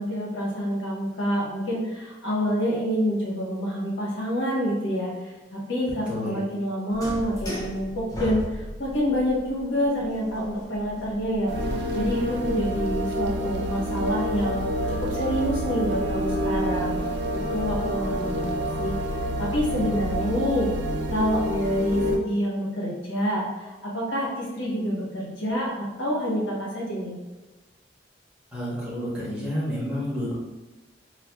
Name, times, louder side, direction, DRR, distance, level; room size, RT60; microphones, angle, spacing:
voice 1, 0.0-11.5 11.9-17.0 17.5-18.9 19.4-20.7 21.1-27.2, equal, 85° left, -5 dB, 1.2 m, -27 dB
voice 2, 6.1-6.4 28.5-30.3, equal, 5° right, -8 dB, 1.0 m, -30 dB
sound 1, 6.9-13.0, equal, 20° left, 0.5 m, -38 dB
sound 2, 11.5-22.2, equal, 65° right, 0.5 m, -28 dB
4.3 x 2.4 x 2.2 m, 1.2 s
head